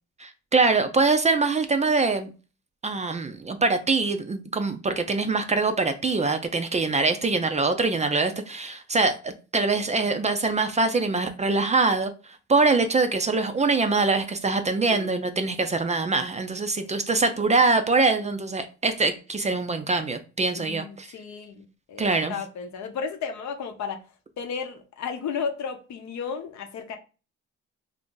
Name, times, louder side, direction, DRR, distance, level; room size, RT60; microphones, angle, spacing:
voice 1, 0.2-2.3 2.8-12.1 12.5-21.1 22.0-22.4, right 3 dB, 25° right, 0.4 m, -23 dB
voice 2, 20.7-24.0 24.4-27.0, left 6 dB, 65° left, 0.7 m, -33 dB
2.6 x 2.4 x 3.7 m
cardioid pair, 90°, 30 cm